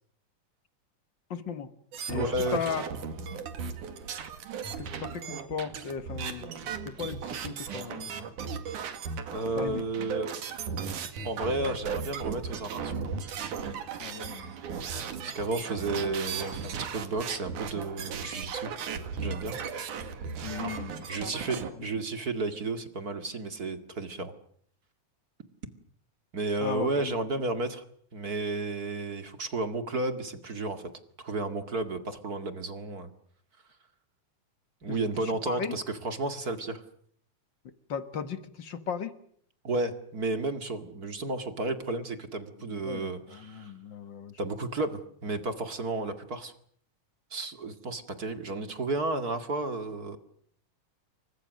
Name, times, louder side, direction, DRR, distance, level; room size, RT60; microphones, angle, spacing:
voice 1, 1.3-1.7 2.1-2.2 2.5-2.8 4.8-6.5 6.8-8.1 9.6-9.8 14.0-14.5 20.4-21.3 26.6-27.1 35.2-35.8 37.9-39.1 42.7-44.3, left 7 dB, 45° left, 11 dB, 1.7 m, -36 dB
sound 1, 1.9-21.7, right 6 dB, 75° right, 3.5 m, -36 dB
voice 2, 2.1-2.7 9.3-10.4 11.2-13.0 15.2-18.7 19.2-19.6 21.1-24.3 26.3-27.8 28.1-30.8 31.2-33.1 34.8-36.8 39.6-43.7 44.4-46.5 47.3-50.2, right 2 dB, 30° right, 8 dB, 2.2 m, -32 dB
29.5 x 24.5 x 6.5 m, 0.62 s
omnidirectional pair, 3.6 m